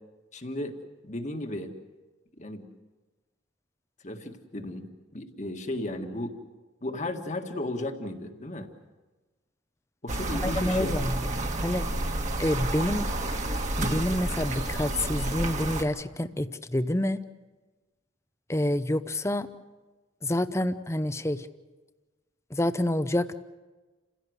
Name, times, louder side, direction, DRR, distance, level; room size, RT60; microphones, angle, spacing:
voice 1, 0.3-0.8 1.0-1.7 2.4-2.6 4.0-4.9 5.1-6.3 6.8-8.7 10.0-11.0, left 1 dB, 40° left, 5 dB, 1.8 m, -34 dB
sound 1, 10.1-15.8, right 1 dB, 40° right, 1.8 m, -30 dB
voice 2, 10.4-11.1 11.6-11.9 12.4-13.1 13.8-17.2 18.5-19.5 20.2-21.5 22.5-23.4, left 1 dB, 15° left, 12 dB, 0.7 m, -27 dB
29.0 x 16.5 x 8.0 m, 1.2 s
head